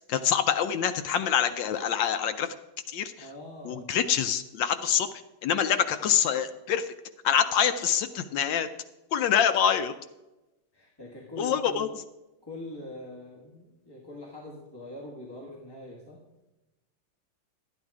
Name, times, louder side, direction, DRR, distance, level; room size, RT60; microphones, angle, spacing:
voice 1, 0.1-2.5 2.9-3.1 3.6-5.1 5.4-6.8 7.2-8.7 9.1-9.9 11.4-11.9, left 8 dB, 75° left, 10 dB, 1.1 m, -25 dB
voice 2, 3.2-3.9 10.7-11.9 12.4-16.2, left 1 dB, 15° left, -4 dB, 1.2 m, -43 dB
12.0 x 9.0 x 4.8 m, 1.0 s
omnidirectional pair, 2.3 m